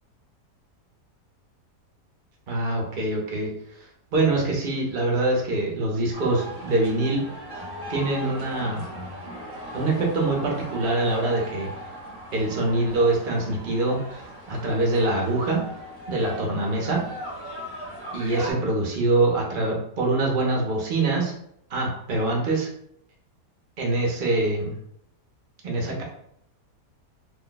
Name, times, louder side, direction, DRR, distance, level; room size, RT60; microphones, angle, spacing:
voice 1, 2.5-3.5 4.1-7.2 7.9-8.8 9.7-11.7 12.3-14.0 14.5-15.6 16.1-17.0 18.1-21.3 21.7-22.7 23.8-24.7 25.6-26.0, right 2 dB, 45° right, -1 dB, 0.7 m, -24 dB
sound 1, 6.1-18.5, equal, 15° right, 0.9 m, -38 dB
2.7 x 2.2 x 3.8 m, 0.72 s
omnidirectional pair, 1.8 m